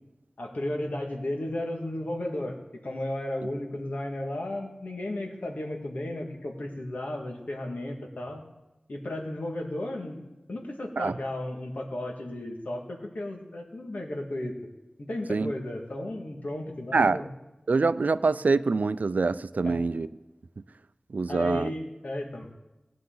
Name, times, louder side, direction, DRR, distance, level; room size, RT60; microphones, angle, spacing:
voice 1, 0.4-8.4 8.9-10.2 10.5-14.5 15.1-17.3 19.6-19.8 21.3-22.5, left 1 dB, 90° left, 1 dB, 1.9 m, -34 dB
voice 2, 17.7-20.1 21.1-21.7, right 4 dB, 90° right, 15 dB, 0.4 m, -25 dB
19.5 x 9.6 x 3.9 m, 1.0 s
wide cardioid pair, 50°, 3 cm